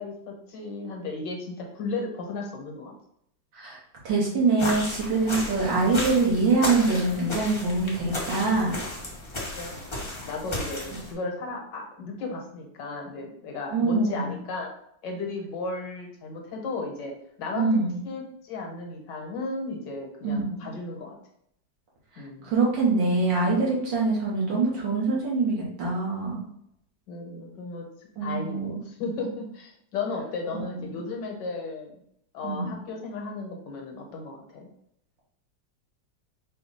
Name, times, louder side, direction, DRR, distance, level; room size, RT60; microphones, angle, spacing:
voice 1, 0.0-2.9 9.5-14.7 15.0-17.1 17.4-21.2 22.2-22.5 27.1-27.9 28.2-32.0 32.3-34.7, left 3 dB, 75° left, 1 dB, 1.6 m, -35 dB
voice 2, 4.0-8.8 13.7-14.3 17.5-18.0 20.2-20.7 22.4-26.5 28.2-28.9 30.5-31.1 32.4-32.8, right 3 dB, 75° right, -5 dB, 2.0 m, -24 dB
sound 1, 4.6-11.1, left 1 dB, 30° left, 0.5 m, -34 dB
4.9 x 2.3 x 4.1 m, 0.71 s
omnidirectional pair, 2.0 m